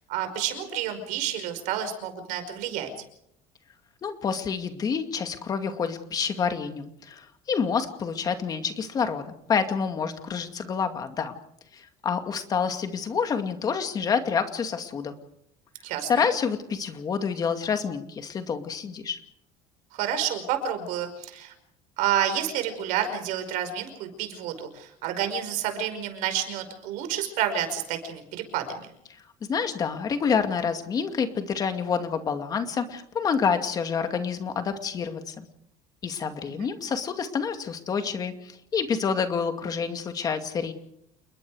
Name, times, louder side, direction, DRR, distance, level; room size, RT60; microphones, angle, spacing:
voice 1, 0.1-2.9 15.8-16.1 19.9-21.5 22.0-28.9 36.6-36.7, right 9 dB, 65° right, 8 dB, 5.3 m, -29 dB
voice 2, 4.0-11.4 11.7-15.1 16.1-19.2 29.5-35.5 36.0-40.7, left 6 dB, 25° left, 7 dB, 2.3 m, -28 dB
29.0 x 21.5 x 5.0 m, 0.73 s
cardioid pair, 165°, 14 cm